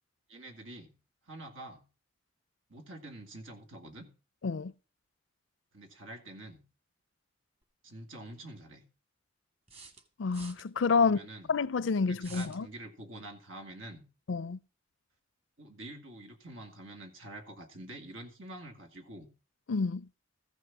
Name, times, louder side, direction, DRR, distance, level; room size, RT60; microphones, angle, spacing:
voice 1, 0.3-0.9 1.2-1.9 2.7-4.1 5.7-6.6 7.8-8.8 11.0-11.5 12.1-14.0 15.6-19.3, right 1 dB, 90° right, 2.4 m, -47 dB
sound 1, 7.6-7.7 9.7-10.7 12.2-12.6, right 4 dB, 30° right, 1.8 m, -50 dB
voice 2, 10.2-11.2 11.5-12.7 14.3-14.6 19.7-20.1, left 4 dB, 70° left, 0.5 m, -28 dB
14.5 x 6.4 x 6.0 m
head